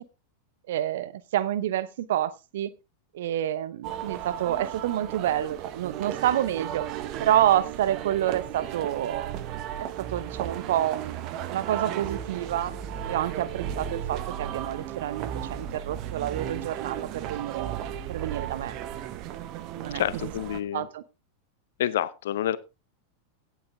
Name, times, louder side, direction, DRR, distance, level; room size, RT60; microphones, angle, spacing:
voice 1, 0.7-2.7 3.1-6.9 7.2-9.3 9.8-12.7 13.1-18.7 19.8-20.3 20.7-21.0, right 11 dB, 55° right, 18 dB, 0.8 m, -28 dB
sound 1, 3.8-20.6, right 10 dB, 40° right, 1.2 m, -35 dB
voice 2, 19.9-20.9 21.8-22.6, left 11 dB, 60° left, 17 dB, 0.9 m, -28 dB
17.0 x 8.3 x 3.6 m, 0.27 s
figure-of-eight pair, 90°, 0 cm